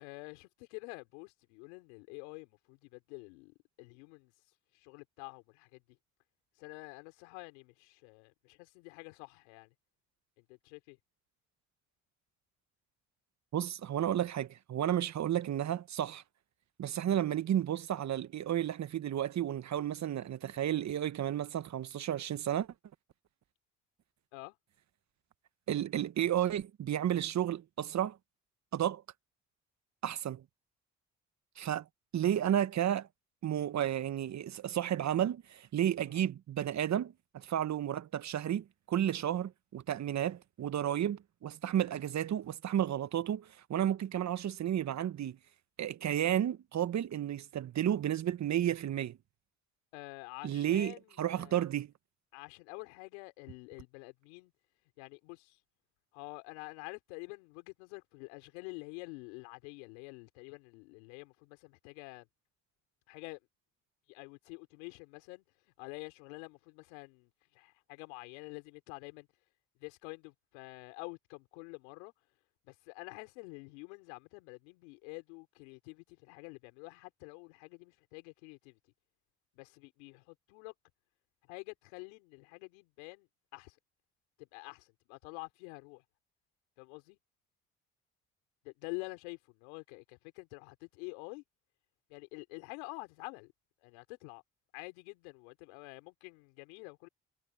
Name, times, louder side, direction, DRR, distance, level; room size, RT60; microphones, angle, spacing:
voice 1, 0.0-4.3 4.7-5.8 6.6-9.7 10.4-11.0 24.3-24.5 36.1-36.2 49.9-51.0 51.3-51.7 52.3-54.5 55.0-55.6 56.1-62.3 63.1-63.4 64.1-65.4 65.8-69.3 69.8-72.1 72.6-78.8 79.5-80.7 81.5-83.3 83.5-83.8 84.4-86.0 86.8-87.2 88.6-91.4 92.1-93.5 93.8-94.4 94.7-97.1, left 30 dB, 85° left, 5.0 m, -48 dB
voice 2, 13.5-16.2 16.8-22.7 25.7-28.2 28.7-29.0 30.0-30.4 31.6-31.9 32.1-33.1 33.4-45.4 45.8-49.2 50.4-51.9, right 11 dB, 55° right, 1.3 m, -32 dB
hypercardioid pair, 50°, 33 cm